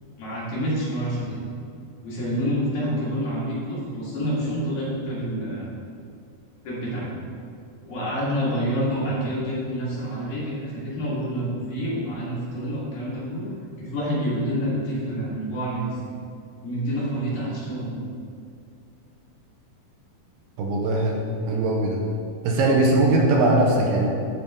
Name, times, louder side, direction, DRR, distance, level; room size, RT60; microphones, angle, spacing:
voice 1, 0.2-1.4 2.0-5.7 6.6-7.1 7.8-13.5 13.8-16.0 16.6-18.0, equal, 55° left, -8 dB, 3.2 m, -28 dB
voice 2, 20.6-22.0 22.4-24.1, right 2 dB, 75° right, -1 dB, 2.4 m, -20 dB
12.5 x 4.6 x 3.6 m, 2.4 s
omnidirectional pair, 4.3 m